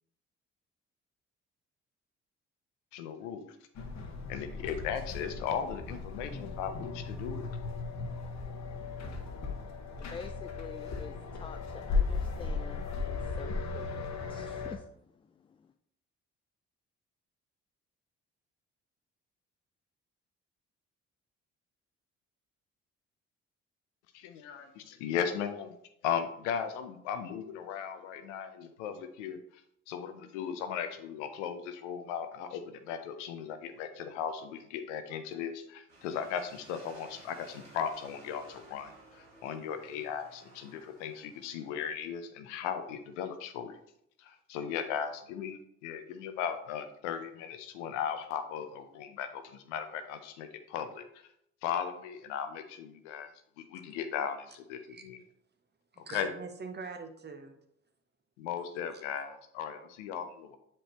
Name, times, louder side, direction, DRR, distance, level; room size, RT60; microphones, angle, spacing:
voice 1, 2.9-3.6 4.3-7.4 24.1-25.7 26.0-29.4 29.9-43.8 44.2-51.0 51.6-53.3 53.6-55.2 56.0-56.3 58.4-60.6, left 8 dB, 80° left, 8 dB, 0.7 m, -37 dB
sound 1, 3.8-14.8, left 4 dB, 50° left, 1.1 m, -36 dB
voice 2, 10.0-15.7, left 5 dB, 15° left, 8 dB, 0.3 m, -48 dB
sound 2, 35.9-41.9, right 2 dB, 75° right, 1.7 m, -56 dB
voice 3, 55.9-57.6 58.9-59.0, right 4 dB, 30° right, 6 dB, 1.0 m, -43 dB
7.6 x 4.4 x 3.0 m, 0.73 s
hypercardioid pair, 45°, 36 cm